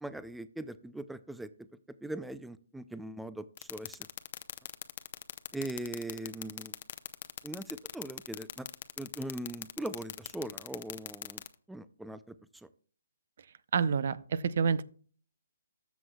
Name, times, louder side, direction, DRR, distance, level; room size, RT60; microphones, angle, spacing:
voice 1, 0.0-1.7 2.0-4.1 5.5-6.8 7.4-8.7 9.0-11.4 11.7-12.7, right 1 dB, 5° right, 14 dB, 0.4 m, -40 dB
sound 1, 3.6-11.5, left 10 dB, 45° left, 0.7 m, -39 dB
voice 2, 13.7-14.8, right 6 dB, 55° right, 18 dB, 0.6 m, -28 dB
13.5 x 6.2 x 2.3 m, 0.43 s
hypercardioid pair, 145°, 0 cm